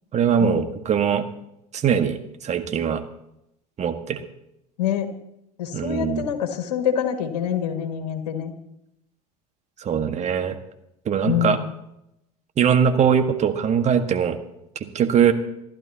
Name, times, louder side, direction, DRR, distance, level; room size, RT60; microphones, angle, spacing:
voice 1, 0.1-1.2 1.7-3.0 3.8-4.2 5.7-6.2 9.8-10.6 11.0-11.6 12.6-14.4 14.9-15.3, right 7 dB, 35° right, 7 dB, 1.7 m, -21 dB
voice 2, 4.8-5.1 5.6-8.5 11.2-11.7, left 9 dB, 70° left, 6 dB, 2.0 m, -25 dB
27.5 x 12.0 x 2.9 m, 0.83 s
hypercardioid pair, 75°, 21 cm